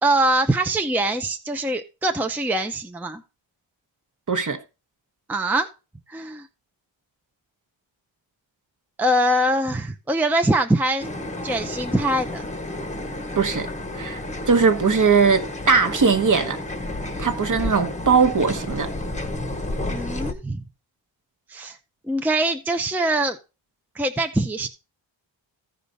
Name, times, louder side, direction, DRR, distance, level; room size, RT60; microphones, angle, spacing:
voice 1, 0.0-3.2 5.3-5.7 6.1-6.5 9.0-11.1 11.4-12.5 19.9-20.6 21.5-21.8 22.1-23.4 23.9-24.7, right 1 dB, 5° right, 0.6 m, -23 dB
voice 2, 4.3-4.6 13.4-13.7 13.9-14.2 14.5-16.6 17.2-18.9, right 5 dB, 40° right, 1.2 m, -19 dB
sound 1, 11.0-20.3, left 1 dB, 15° left, 1.0 m, -31 dB
14.5 x 5.0 x 4.0 m
wide cardioid pair, 140°, 48 cm